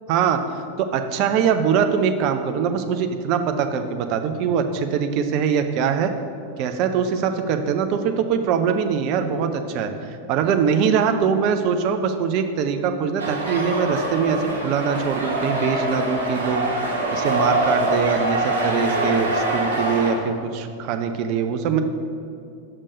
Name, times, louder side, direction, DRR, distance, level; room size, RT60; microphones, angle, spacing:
voice 1, 0.1-0.4 0.8-6.1 6.6-16.6 17.1-21.8, right 7 dB, 40° right, 7 dB, 0.6 m, -22 dB
sound 1, 13.2-20.1, right 1 dB, 70° right, 1.4 m, -24 dB
6.8 x 5.3 x 5.3 m, 2.5 s
figure-of-eight pair, 90°, 0 cm